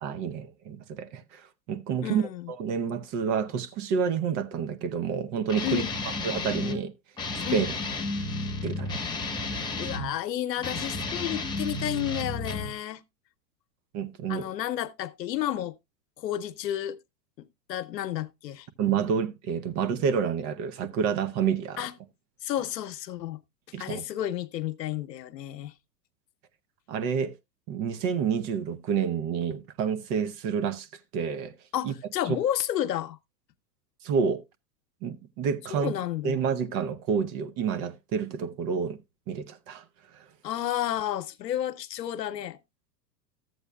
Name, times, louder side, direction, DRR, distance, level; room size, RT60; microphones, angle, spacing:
voice 1, 0.0-2.2 2.6-5.8 6.2-6.9 7.5-7.7 8.6-9.0 13.9-14.5 18.8-21.8 23.7-24.0 26.9-27.4 27.7-30.9 31.1-31.5 31.8-31.9 32.3-32.4 34.0-34.4 35.0-35.9 36.2-39.0 39.3-39.8 40.1-40.2, right 7 dB, 35° right, 0.8 m, -29 dB
voice 2, 2.0-2.5 5.6-5.9 7.4-7.7 9.6-13.0 14.3-15.7 16.2-17.0 17.4-18.7 21.8-21.9 22.4-23.4 23.8-25.7 31.7-33.2 35.7-36.4 40.4-42.6, left 12 dB, 80° left, 0.9 m, -31 dB
Guitar, 5.5-6.8 7.2-10.1 10.6-12.7, left 2 dB, 10° left, 1.2 m, -32 dB
14.0 x 7.9 x 2.2 m
hypercardioid pair, 115°, 49 cm